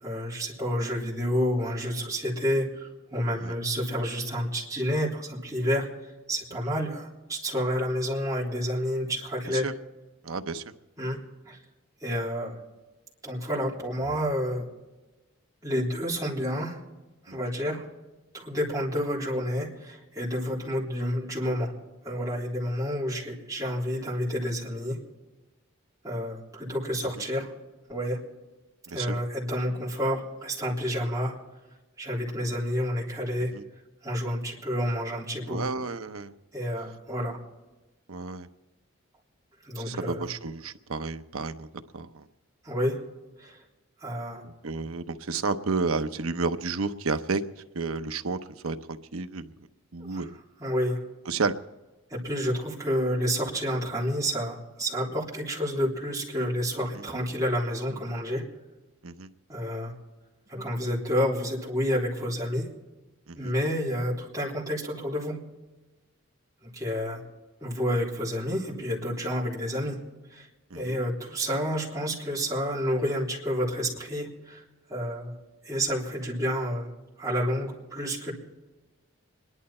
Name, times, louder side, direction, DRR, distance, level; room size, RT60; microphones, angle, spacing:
voice 1, 0.0-5.9 6.3-9.6 11.0-11.2 11.5-11.6 12.0-12.6 13.2-14.6 15.6-16.8 17.3-17.8 18.3-21.7 22.0-25.0 26.0-27.5 27.9-28.2 28.9-31.3 32.0-33.5 34.0-35.6 36.5-37.4 39.7-40.3 42.6-43.0 43.4-43.6 44.0-44.4 50.1-50.2 50.6-51.0 52.1-58.4 59.5-59.9 60.5-62.7 63.4-65.4 66.6-67.2 67.6-70.0 70.3-70.5 70.7-74.6 74.9-75.3 75.6-76.9 77.2-78.3, equal, 15° right, -6 dB, 3.5 m, -29 dB
voice 2, 10.2-10.6 17.3-17.4 27.2-27.3 28.9-29.2 33.5-33.6 35.5-36.3 38.1-38.5 39.8-42.3 44.4-47.4 47.7-48.4 48.6-49.5 49.9-50.4 51.3-51.5 56.9-57.0 59.0-59.3 63.3-63.5 70.7-71.0, right 4 dB, 85° right, 9 dB, 0.8 m, -31 dB
27.0 x 11.0 x 4.3 m, 1.1 s
head